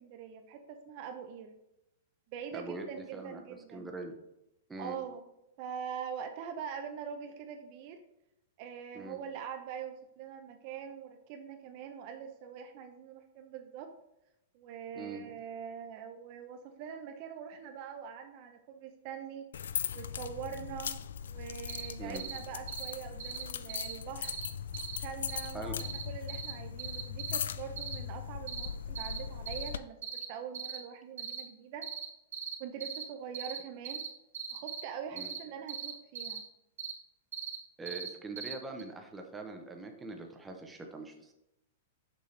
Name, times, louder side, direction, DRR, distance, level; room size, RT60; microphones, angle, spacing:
voice 1, 0.0-1.6 2.3-3.9 4.8-5.3 5.6-8.0 8.6-13.9 14.5-19.5 19.9-20.9 21.3-24.4 25.0-31.9 32.6-34.0 34.5-36.5, right 7 dB, 45° right, 6 dB, 0.6 m, -43 dB
voice 2, 2.5-2.9 3.1-3.4 3.7-4.2 4.7-5.0 8.9-9.2 14.9-15.2 22.0-22.2 25.5-25.8 35.1-35.3 37.8-41.3, right 3 dB, 10° right, 3 dB, 0.8 m, -42 dB
sound 1, 19.5-29.8, left 8 dB, 85° left, 0.3 m, -39 dB
sound 2, 21.7-21.9 22.1-22.4 22.7-22.9 23.2-23.4 23.7-23.9 24.2-24.5 24.7-25.0 25.3-25.5 25.8-26.0 26.3-26.5 26.8-27.4 27.8-28.0 28.5-28.7 29.0-29.2 29.5-29.7 30.0-30.3 30.5-30.8 31.2-31.4 31.8-32.1 32.3-32.6 32.8-33.0 33.3-33.6 33.8-34.1 34.3-34.8 35.2-35.4 35.7-36.4 36.8-36.9 37.3-37.6 37.9-38.1 38.4-38.5 38.8-38.9, right 8 dB, 70° right, 1.1 m, -39 dB
6.7 x 5.4 x 3.3 m, 0.87 s
hypercardioid pair, 145°, 0 cm